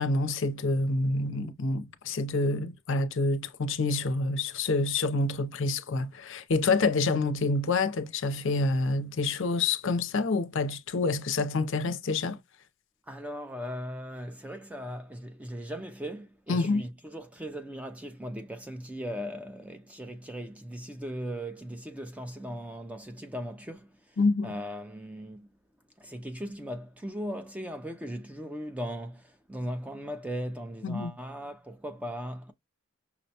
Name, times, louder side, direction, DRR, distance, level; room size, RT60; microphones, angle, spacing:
voice 1, 0.0-12.4 16.5-16.8 24.2-24.5 30.8-31.1, left 3 dB, 60° left, 0.5 m, -27 dB
voice 2, 13.1-25.5 26.0-32.5, equal, 5° right, 0.3 m, -38 dB
5.8 x 2.2 x 2.7 m
head